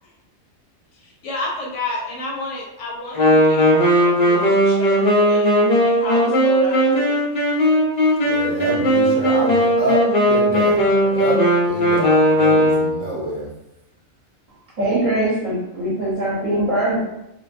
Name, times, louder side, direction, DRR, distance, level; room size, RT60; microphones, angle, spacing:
voice 1, 1.2-5.5 5.8-7.2, left 2 dB, 70° left, -2 dB, 0.9 m, -30 dB
Wind instrument woodwind instrument, 3.1-13.0, equal, 45° left, 0.6 m, -17 dB
voice 2, 8.3-11.4 11.6-13.5, right 1 dB, 80° right, -5 dB, 1.2 m, -26 dB
voice 3, 14.8-17.0, right 1 dB, 40° right, -6 dB, 0.9 m, -21 dB
2.5 x 2.2 x 2.4 m, 0.86 s
omnidirectional pair, 1.4 m